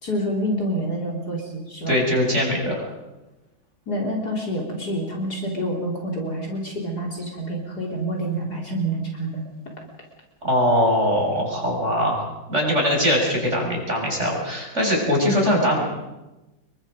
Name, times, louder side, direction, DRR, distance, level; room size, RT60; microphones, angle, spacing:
voice 1, 0.0-2.0 3.9-9.4, right 1 dB, 50° left, -1 dB, 4.3 m, -27 dB
voice 2, 1.9-2.9 10.4-15.8, equal, 35° right, -1 dB, 6.9 m, -21 dB
29.0 x 23.0 x 5.3 m, 1.0 s
omnidirectional pair, 2.2 m